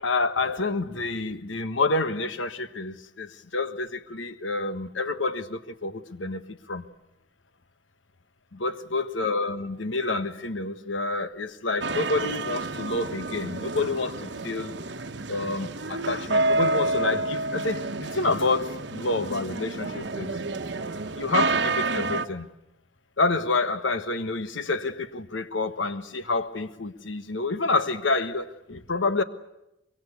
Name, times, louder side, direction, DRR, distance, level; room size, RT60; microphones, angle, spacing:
voice 1, 0.0-6.9 8.5-14.7 15.3-20.3 21.1-22.5 23.2-29.2, left 3 dB, 80° left, 1.3 m, -28 dB
sound 1, 11.8-22.3, right 3 dB, 65° right, 1.1 m, -29 dB
24.5 x 22.5 x 8.2 m
head